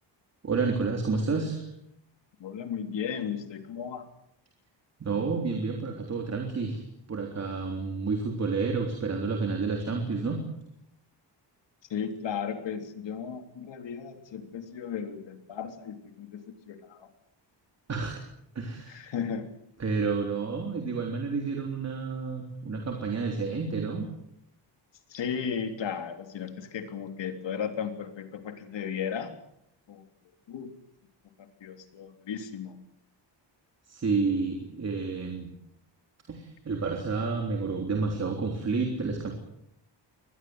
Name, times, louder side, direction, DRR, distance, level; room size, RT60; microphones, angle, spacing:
voice 1, 0.4-1.7 5.0-10.4 17.9-18.2 18.6-19.0 19.8-24.1 33.9-35.5 36.3-39.3, right 4 dB, 35° right, 2 dB, 3.6 m, -30 dB
voice 2, 2.4-4.1 11.9-17.1 18.9-19.5 25.1-29.3 29.9-30.0 30.5-30.7 31.6-32.8, left 7 dB, 75° left, 6 dB, 3.5 m, -35 dB
25.5 x 20.0 x 8.0 m, 0.78 s
wide cardioid pair, 175°, 44 cm